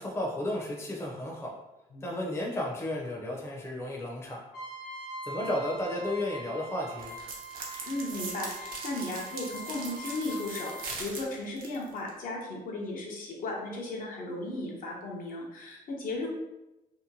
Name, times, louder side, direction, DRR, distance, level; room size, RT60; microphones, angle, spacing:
voice 1, 0.0-1.6 2.0-4.4 5.2-7.1, left 1 dB, 15° left, -2 dB, 0.5 m, -33 dB
Trumpet, 4.5-10.9, right 2 dB, 85° left, 1.0 m, -43 dB
sound 1, 7.0-12.1, right 3 dB, 85° right, 0.6 m, -41 dB
voice 2, 7.9-16.3, left 2 dB, 70° left, -2 dB, 0.6 m, -36 dB
2.7 x 2.2 x 2.6 m, 0.98 s
cardioid pair, 125°, 15 cm